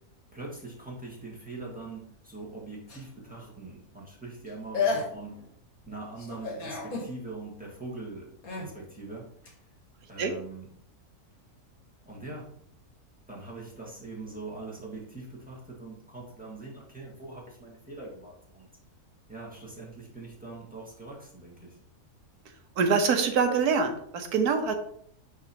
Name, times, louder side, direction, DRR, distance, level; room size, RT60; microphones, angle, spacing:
voice 1, 0.3-5.5 5.8-8.3 8.6-9.5 10.1-10.8 12.0-12.5 13.3-18.7 19.3-21.8, right 3 dB, 5° right, -4 dB, 1.7 m, -42 dB
sound 1, 2.9-3.5 4.5-4.6 4.7-5.4 6.2-7.1 8.4-8.7 9.5-9.6, left 4 dB, 70° left, 1.9 m, -32 dB
voice 2, 22.8-24.7, right 5 dB, 85° right, 6 dB, 1.4 m, -24 dB
10.0 x 3.7 x 2.9 m, 0.66 s
omnidirectional pair, 1.6 m